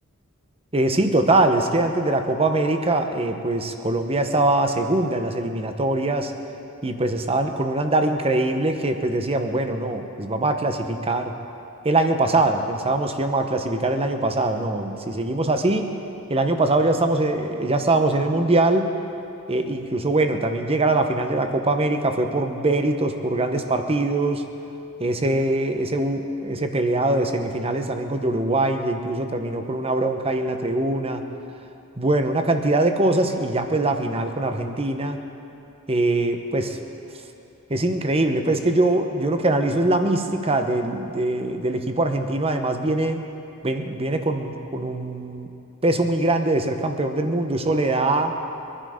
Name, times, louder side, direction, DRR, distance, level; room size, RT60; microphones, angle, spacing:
voice 1, 0.7-6.3 6.8-11.3 11.8-15.9 16.3-18.9 19.5-24.4 25.0-31.2 32.0-35.2 35.9-36.8 37.7-43.2 43.6-45.5 45.8-48.3, right 2 dB, 25° right, 6 dB, 1.0 m, -22 dB
22.0 x 11.5 x 5.1 m, 2.8 s
head